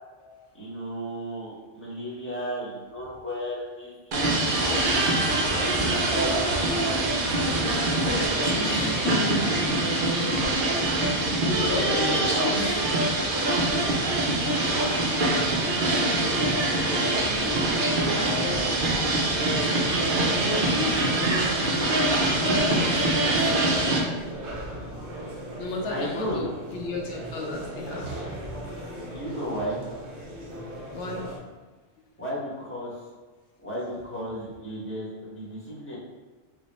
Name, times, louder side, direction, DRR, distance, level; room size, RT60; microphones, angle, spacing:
voice 1, 0.5-6.9 11.3-13.0 13.3-13.7 14.7-18.3 25.9-26.4 29.0-29.8 32.2-33.0 33.6-36.0, equal, 10° left, -6 dB, 0.9 m, -35 dB
sound 1, 4.1-24.0, right 2 dB, 55° right, 0.7 m, -24 dB
voice 2, 7.8-9.4 11.5-12.9 20.4-21.9 22.4-23.9 25.6-28.2 30.9-31.2, left 2 dB, 80° left, -1 dB, 0.9 m, -33 dB
sound 2, 17.1-31.4, equal, 80° right, 1.1 m, -38 dB
3.4 x 2.1 x 4.0 m, 1.4 s
omnidirectional pair, 1.2 m